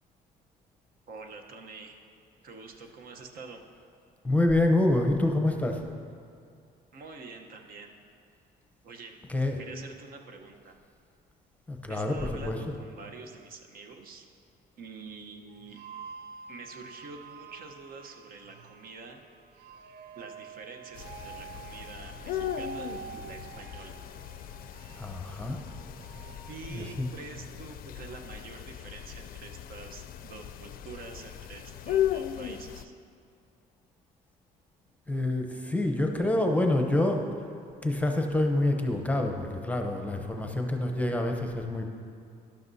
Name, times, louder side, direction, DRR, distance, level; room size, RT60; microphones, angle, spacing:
voice 1, 1.1-2.0 2.4-3.6 6.9-8.0 8.8-9.2 9.6-10.8 11.9-14.3 14.8-15.8 16.5-19.2 20.1-24.0 26.5-32.9, right 4 dB, 60° right, 4 dB, 1.0 m, -46 dB
voice 2, 4.2-5.8 9.3-9.6 11.7-12.6 25.0-25.6 26.7-27.1 35.1-37.2 37.8-41.9, left 1 dB, 10° left, 3 dB, 0.8 m, -27 dB
sound 1, 15.5-27.1, right 6 dB, 80° right, 0.5 m, -47 dB
sound 2, 20.9-32.8, left 11 dB, 60° left, 0.4 m, -37 dB
12.0 x 12.0 x 2.7 m, 2.4 s
cardioid pair, 110°, 17 cm